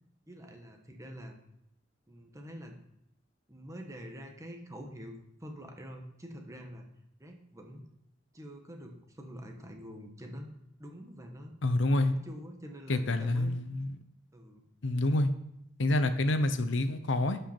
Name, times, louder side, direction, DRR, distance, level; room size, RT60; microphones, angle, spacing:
voice 1, 0.3-1.4 2.1-2.8 3.5-6.8 7.2-7.8 8.3-10.5 10.8-11.5 12.0-13.6 14.3-14.7, equal, 15° right, 3 dB, 1.2 m, -46 dB
voice 2, 11.6-12.1 12.9-13.9 14.8-15.3 15.8-17.4, left 2 dB, 75° left, 10 dB, 0.7 m, -27 dB
11.5 x 5.4 x 4.3 m, 0.79 s
head